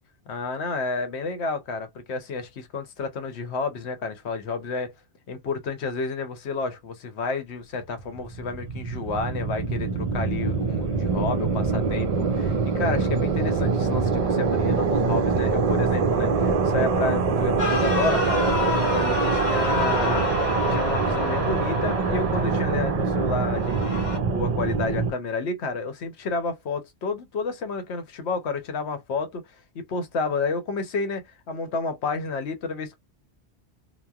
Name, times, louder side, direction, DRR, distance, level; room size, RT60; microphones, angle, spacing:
voice 1, 0.3-4.9 5.3-20.4 20.7-29.4 29.7-33.0, left 3 dB, 80° left, 1.0 m, -30 dB
sound 1, 8.0-25.1, right 4 dB, 60° right, 0.4 m, -24 dB
sound 2, 17.6-22.7 23.6-24.2, left 4 dB, 45° left, 0.9 m, -30 dB
3.0 x 2.1 x 2.3 m
omnidirectional pair, 1.1 m